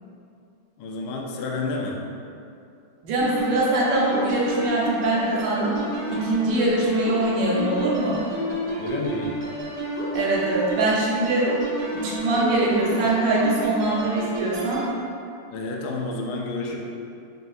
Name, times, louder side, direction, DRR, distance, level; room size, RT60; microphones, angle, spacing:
voice 1, 0.8-2.0 8.8-9.3 15.5-16.8, left 3 dB, 75° left, -1 dB, 0.9 m, -30 dB
voice 2, 3.0-5.8 6.1-8.2 10.1-11.5 12.0-14.8, right 2 dB, 70° right, -5 dB, 1.4 m, -23 dB
sound 1, 3.2-14.9, equal, 85° right, 0.4 m, -30 dB
5.1 x 2.8 x 2.4 m, 2.6 s
omnidirectional pair, 2.2 m